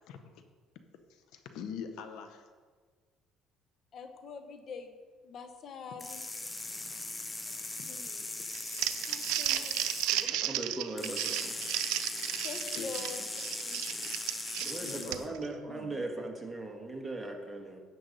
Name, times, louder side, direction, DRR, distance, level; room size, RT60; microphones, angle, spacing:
voice 1, 1.1-2.5 7.4-7.5 9.5-9.6 12.7-13.0 14.8-15.9, left 6 dB, 75° left, 8 dB, 0.9 m, -44 dB
voice 2, 3.9-5.0 5.2-6.2 7.8-8.3 9.1-9.8 12.4-13.2 13.5-13.8, left 5 dB, 55° left, 7 dB, 1.0 m, -44 dB
sound 1, 6.0-10.3 11.0-15.3, left 2 dB, 20° left, 0.9 m, -39 dB
Crumpling crinkling, 8.5-15.5, right 13 dB, 85° right, 0.5 m, -34 dB
voice 3, 10.1-11.6 14.6-17.8, right 2 dB, 15° right, 1 dB, 1.7 m, -39 dB
11.0 x 8.0 x 4.1 m, 1.5 s
supercardioid pair, 90°, 0 cm